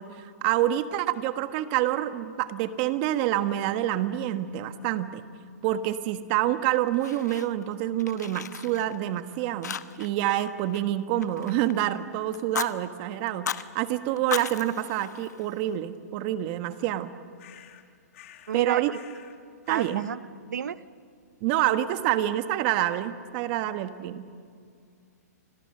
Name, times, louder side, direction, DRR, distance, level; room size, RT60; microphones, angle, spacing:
voice 1, 0.0-5.2 5.6-17.1 18.5-18.9 19.7-20.1 21.4-24.3, right 13 dB, 35° right, 11 dB, 1.3 m, -27 dB
Fire, 6.6-7.7 8.0-9.2 9.6-10.2 10.5-11.9 12.3-12.7 13.3-13.7 14.2-15.7, left 8 dB, 85° left, 1.1 m, -36 dB
sound 1, 17.4-17.9 18.1-18.6 18.9-19.4 19.6-20.1, left 11 dB, 50° left, 2.5 m, -51 dB
voice 2, 18.5-19.0 19.7-20.2 20.5-20.8, right 8 dB, 80° right, 15 dB, 1.0 m, -31 dB
30.0 x 26.0 x 6.7 m, 2.2 s
hypercardioid pair, 150°, 9 cm